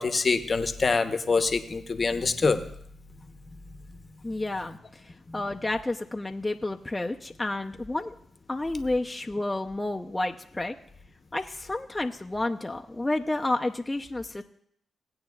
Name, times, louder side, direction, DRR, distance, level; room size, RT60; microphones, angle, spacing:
voice 1, 0.0-2.6 5.3-5.4, left 4 dB, 45° left, 9 dB, 0.9 m, -25 dB
voice 2, 4.2-8.1 8.5-10.8 11.3-14.4, left 2 dB, 20° left, 3 dB, 0.6 m, -30 dB
18.0 x 8.7 x 2.4 m, 0.69 s
supercardioid pair, 50°, 0 cm